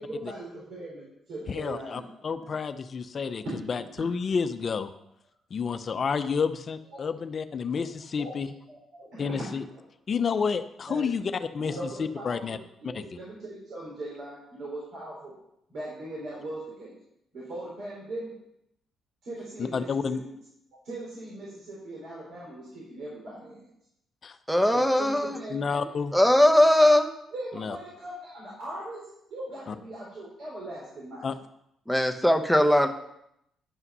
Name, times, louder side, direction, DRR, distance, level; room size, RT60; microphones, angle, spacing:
voice 1, 0.0-2.0 2.4-2.5 3.4-3.5 6.9-7.1 8.2-8.4 8.7-9.4 9.7-9.8 10.9-11.3 11.6-15.4 15.7-17.0 17.3-18.3 19.2-20.3 20.8-23.6 24.7-25.9 27.3-31.3, right 1 dB, 65° right, -6 dB, 3.7 m, -40 dB
voice 2, 1.5-4.9 5.5-8.5 9.2-9.6 10.1-12.6 12.8-13.0 19.7-20.2 24.2-24.4 25.5-26.1 27.6-27.8 29.7-29.8 31.2-31.4, left 5 dB, 45° left, 10 dB, 0.7 m, -30 dB
voice 3, 24.5-25.4 26.1-27.1 31.9-32.9, left 1 dB, ahead, 7 dB, 1.0 m, -20 dB
11.0 x 5.6 x 5.5 m, 0.79 s
cardioid pair, 90°, 0 cm